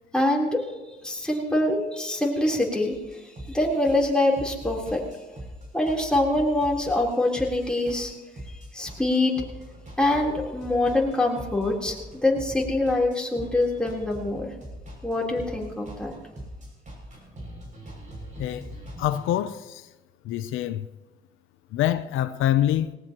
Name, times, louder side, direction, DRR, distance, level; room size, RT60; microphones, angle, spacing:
voice 1, 0.1-0.6 1.0-5.0 5.7-8.1 8.7-9.3 10.0-11.9 12.2-14.5 15.0-16.1, left 1 dB, 5° left, 3.7 m, -24 dB
sound 1, 2.9-19.4, equal, 40° right, 6.5 m, -41 dB
voice 2, 19.0-19.9 20.2-20.9 21.7-23.0, left 12 dB, 85° left, 0.6 m, -25 dB
19.0 x 18.5 x 3.0 m
cardioid pair, 90°, 20 cm